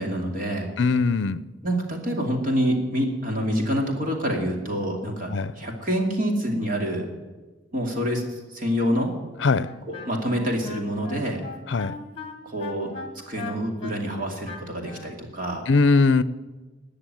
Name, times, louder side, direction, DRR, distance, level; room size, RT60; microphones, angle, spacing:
voice 1, 0.0-0.7 1.6-7.1 7.7-8.2 8.5-9.1 9.9-11.4 12.4-12.9 13.3-15.7, equal, 45° right, 1 dB, 2.5 m, -26 dB
voice 2, 0.8-1.4 5.3-5.5 9.4-9.8 11.7-12.0 15.7-16.2, left 4 dB, 65° left, 17 dB, 0.6 m, -20 dB
Wind instrument woodwind instrument, 9.6-15.2, left 3 dB, 30° left, 1.7 m, -38 dB
20.0 x 6.8 x 9.2 m, 1.3 s
head